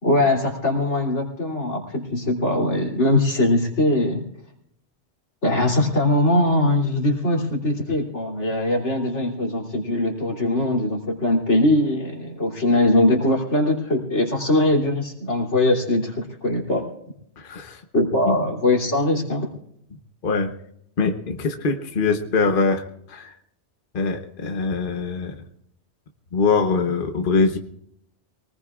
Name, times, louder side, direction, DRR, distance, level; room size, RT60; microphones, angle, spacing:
voice 1, 0.0-4.2 5.4-16.9 17.9-19.5, left 1 dB, 90° left, 0 dB, 3.4 m, -21 dB
voice 2, 17.4-17.8 18.3-18.4 20.2-20.5 21.0-22.8 23.1-23.3 23.9-25.3 26.3-27.6, left 4 dB, 50° left, 5 dB, 1.2 m, -22 dB
23.5 x 19.5 x 2.4 m, 0.70 s
omnidirectional pair, 1.2 m